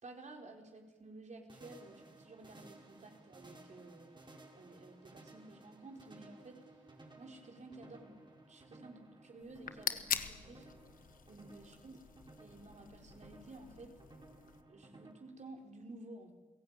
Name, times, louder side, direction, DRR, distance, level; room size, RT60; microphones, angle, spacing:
voice 1, 0.0-4.2 4.5-6.7 7.2-10.7 11.3-12.0 12.4-14.0 14.7-16.3, right 2 dB, 55° right, 2 dB, 4.5 m, -53 dB
sound 1, 1.5-15.1, right 2 dB, 35° right, 4.9 m, -58 dB
sound 2, 9.4-14.6, left 8 dB, 80° left, 1.3 m, -43 dB
30.0 x 17.0 x 9.0 m, 1.3 s
cardioid pair, 55°, 14 cm